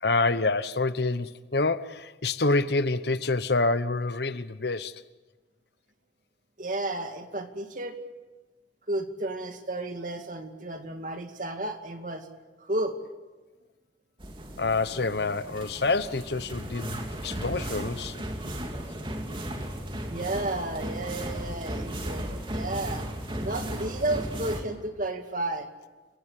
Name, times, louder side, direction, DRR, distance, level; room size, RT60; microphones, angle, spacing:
voice 1, 0.0-5.0 14.6-18.2, left 3 dB, 60° left, 1.0 m, -27 dB
voice 2, 6.6-8.0 8.9-12.3 12.6-13.0 20.1-23.1 23.4-25.7, right 2 dB, 45° right, 2.4 m, -32 dB
sound 1, 14.2-24.6, right 1 dB, 25° right, 2.8 m, -35 dB
30.0 x 17.5 x 9.9 m
head